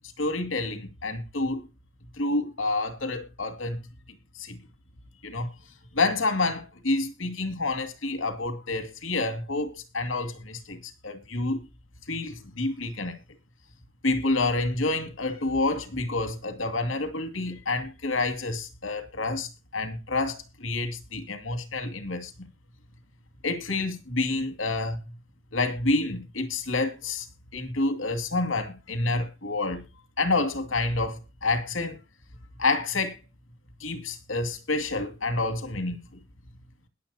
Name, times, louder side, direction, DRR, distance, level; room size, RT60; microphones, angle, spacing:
voice 1, 0.2-1.6 2.2-3.8 4.4-4.6 5.2-5.5 5.9-11.6 12.1-13.2 14.0-22.5 23.4-25.0 25.5-27.3 27.5-29.8 30.2-32.0 32.6-33.2 33.8-36.0, left 2 dB, 85° left, 2.6 m, -28 dB
21.5 x 7.8 x 2.9 m
head